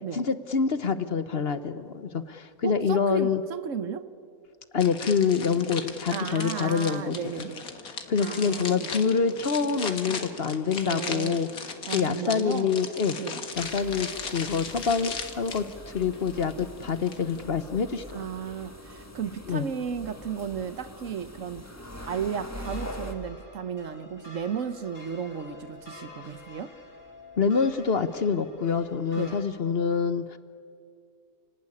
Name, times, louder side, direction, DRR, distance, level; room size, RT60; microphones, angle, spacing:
voice 1, 0.1-3.4 4.7-7.4 8.1-11.5 11.9-13.2 13.6-15.6 15.9-18.3 19.5-19.7 27.4-30.4, left 6 dB, 50° left, 11 dB, 1.0 m, -26 dB
voice 2, 2.6-4.1 6.1-7.7 8.2-8.9 10.8-12.7 13.2-13.4 18.1-21.7 22.1-26.7 29.2-29.4, right 7 dB, 65° right, 12 dB, 1.3 m, -34 dB
sound 1, 4.8-17.4, left 5 dB, 80° left, 2.1 m, -38 dB
sound 2, 13.5-23.1, left 1 dB, 10° left, 1.7 m, -43 dB
sound 3, 22.6-29.4, left 2 dB, 35° left, 3.5 m, -48 dB
29.5 x 18.5 x 9.8 m, 2.4 s
omnidirectional pair, 1.5 m